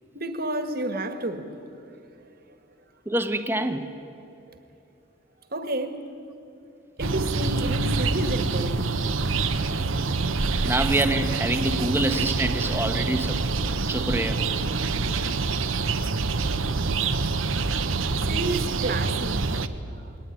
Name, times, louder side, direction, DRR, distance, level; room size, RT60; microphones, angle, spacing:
voice 1, 0.1-1.5 2.2-2.3 5.5-6.0 7.0-8.9 18.0-20.2, right 1 dB, 45° right, 1.7 m, -32 dB
voice 2, 3.1-3.9 10.6-13.4 13.9-14.4, right 1 dB, 10° right, 1.1 m, -26 dB
sound 1, 7.0-19.7, right 3 dB, 75° right, 1.0 m, -26 dB
21.0 x 19.0 x 9.9 m
head